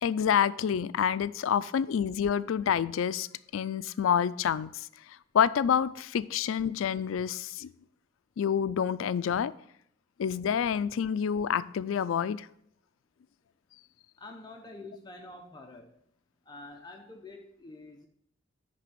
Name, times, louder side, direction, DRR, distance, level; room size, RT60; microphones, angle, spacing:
voice 1, 0.0-3.3 3.5-4.9 5.3-7.7 8.4-9.5 10.2-12.5, left 8 dB, 85° left, 17 dB, 0.3 m, -28 dB
voice 2, 14.2-15.9 16.5-18.1, left 2 dB, 20° left, 2 dB, 0.6 m, -47 dB
10.0 x 3.4 x 6.7 m, 0.72 s
head